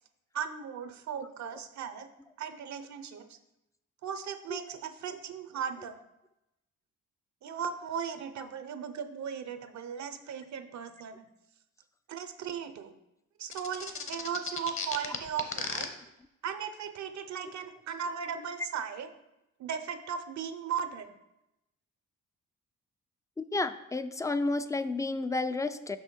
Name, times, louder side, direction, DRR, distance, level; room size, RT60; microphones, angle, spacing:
voice 1, 0.3-2.1 2.4-3.4 4.0-6.0 7.4-11.3 12.1-12.9 13.4-15.9 16.4-19.1 19.6-21.1, right 7 dB, 65° right, 10 dB, 0.8 m, -37 dB
sound 1, 13.5-15.8, left 5 dB, 45° left, 1.0 m, -35 dB
voice 2, 23.4-26.0, left 3 dB, 10° left, 11 dB, 0.4 m, -31 dB
5.7 x 5.5 x 4.5 m, 0.89 s
cardioid pair, 90°, 30 cm